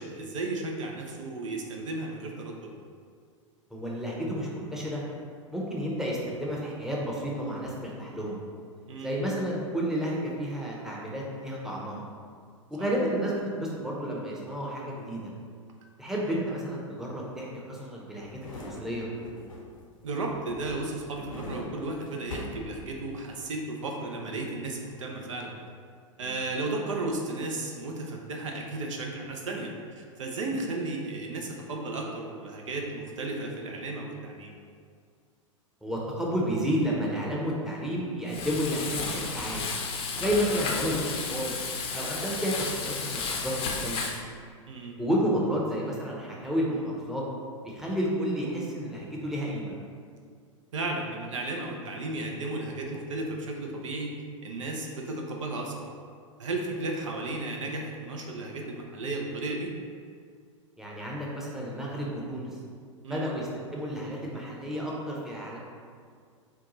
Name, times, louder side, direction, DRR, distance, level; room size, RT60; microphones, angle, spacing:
voice 1, 0.0-2.7 8.9-9.2 20.0-25.5 26.2-34.6 40.1-40.2 44.7-45.0 50.7-54.1 54.4-55.9 56.4-59.7 63.0-63.3, right 2 dB, 70° right, 0 dB, 0.6 m, -34 dB
voice 2, 3.7-5.0 5.5-8.4 9.0-12.0 12.7-15.3 16.0-19.1 26.2-26.3 35.8-39.6 40.2-41.5 41.9-43.5 43.8-44.1 45.0-47.2 47.6-49.7 60.8-62.5 63.1-65.6, equal, 5° right, -4 dB, 0.8 m, -31 dB
sound 1, 18.2-19.9 20.3-23.3 23.7-23.8, left 1 dB, 80° left, 0.8 m, -42 dB
Frying (food), 38.3-44.2, left 4 dB, 30° left, 0.6 m, -33 dB
4.5 x 2.3 x 3.9 m, 2.1 s
figure-of-eight pair, 95°, 17 cm